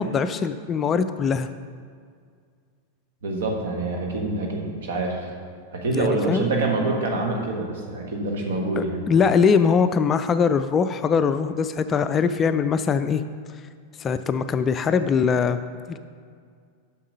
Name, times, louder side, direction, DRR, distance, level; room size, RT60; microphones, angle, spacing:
voice 1, 0.0-1.5 5.9-6.5 8.8-13.2 14.0-16.0, left 6 dB, 25° left, 10 dB, 0.3 m, -22 dB
voice 2, 3.2-5.3 5.7-9.0, right 2 dB, 60° right, 1 dB, 1.4 m, -26 dB
7.3 x 6.1 x 5.3 m, 2.1 s
figure-of-eight pair, 90°, 0 cm